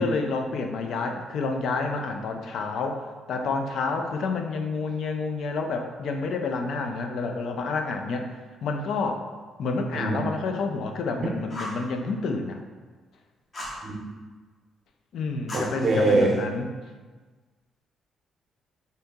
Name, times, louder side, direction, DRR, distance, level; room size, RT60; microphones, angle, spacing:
voice 1, 0.0-3.0 3.3-8.3 8.6-9.2 9.6-12.6 15.1-16.7, left 4 dB, 70° left, 4 dB, 0.3 m, -29 dB
Fire, 11.5-11.9 13.5-13.8 15.5-16.4, left 1 dB, 35° left, 0.7 m, -37 dB
voice 2, 15.5-16.3, right 2 dB, 45° right, -2 dB, 0.6 m, -23 dB
2.7 x 2.7 x 3.5 m, 1.4 s
cardioid pair, 90°, 0 cm